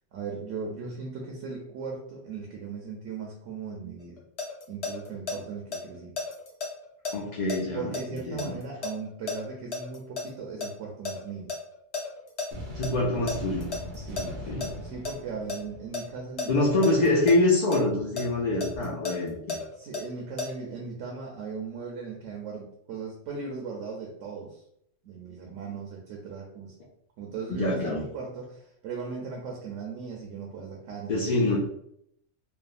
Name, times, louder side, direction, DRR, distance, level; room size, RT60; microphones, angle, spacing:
voice 1, 0.1-4.2 4.7-6.2 7.7-11.5 13.9-16.8 19.7-24.6 25.0-26.7 27.2-31.6, right 5 dB, 75° right, -1 dB, 0.9 m, -38 dB
sound 1, 4.0-5.4 5.7-10.3 10.6-12.5 12.8-12.9 13.3-14.7 15.1-15.6 15.9-17.8 18.2-20.5, left 4 dB, 60° left, 0.8 m, -33 dB
voice 2, 7.1-8.5 12.7-13.7 14.2-14.7 16.5-19.6 27.5-28.0 31.1-31.6, left 2 dB, 85° left, -4 dB, 0.3 m, -25 dB
sound 2, 12.5-16.5, equal, 55° right, 0.6 m, -40 dB
3.3 x 2.1 x 2.3 m, 0.71 s
omnidirectional pair, 1.4 m